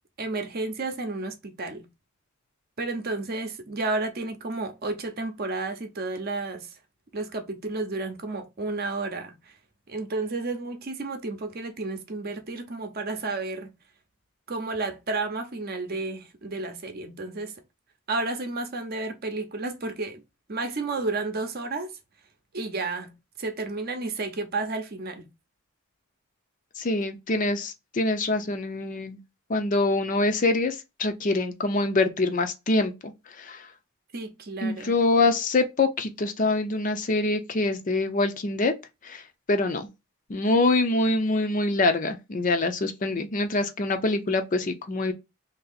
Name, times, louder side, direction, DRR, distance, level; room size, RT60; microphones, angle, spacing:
voice 1, 0.2-1.9 2.8-6.8 7.1-9.6 9.9-13.7 14.5-17.6 18.1-20.2 20.5-22.0 22.5-25.3 34.1-35.0, right 3 dB, 45° right, 0.7 m, -32 dB
voice 2, 26.8-29.2 29.5-33.1 33.4-33.7 34.6-38.7 39.0-39.2 39.5-39.9 40.3-45.1, left 2 dB, 35° left, 0.5 m, -25 dB
2.9 x 2.7 x 4.0 m
head